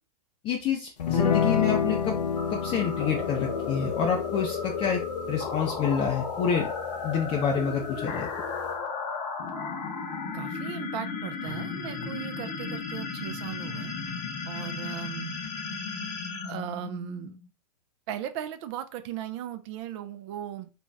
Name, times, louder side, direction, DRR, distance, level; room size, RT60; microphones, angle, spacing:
voice 1, 0.4-2.2 2.5-5.0 5.3-6.7 7.0-8.3, left 7 dB, 25° left, 0.4 m, -28 dB
sound 1, 1.0-8.8, left 6 dB, 90° left, 0.5 m, -31 dB
sound 2, 2.3-17.5, left 5 dB, 50° left, 0.9 m, -34 dB
voice 2, 10.3-13.9 14.5-15.3 16.4-17.4 18.1-20.7, right 11 dB, 45° right, 0.4 m, -37 dB
2.5 x 2.1 x 3.2 m
hypercardioid pair, 125°, 20 cm